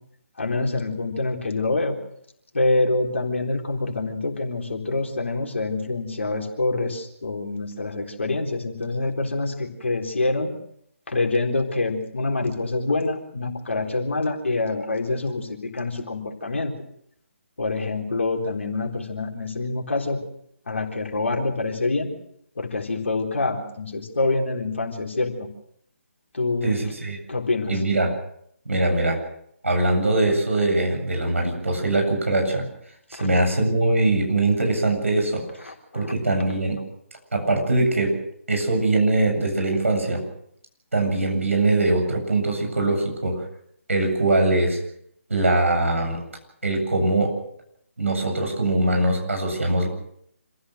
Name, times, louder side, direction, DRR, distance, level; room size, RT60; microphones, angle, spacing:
voice 1, 0.4-2.0 2.5-10.5 11.1-16.7 17.6-20.2 20.7-22.1 22.6-25.3 26.3-26.7 27.3-27.8 35.9-36.0, left 3 dB, 60° left, 1 dB, 4.0 m, -26 dB
voice 2, 26.6-27.2 27.7-28.1 28.7-29.2 29.6-32.7 33.1-36.8 37.3-38.1 38.5-40.2 40.9-43.4 43.9-44.8 45.3-46.2 46.6-47.3 48.0-49.9, right 2 dB, 65° right, 3 dB, 7.9 m, -22 dB
26.5 x 16.0 x 6.5 m, 0.70 s
figure-of-eight pair, 145°, 8 cm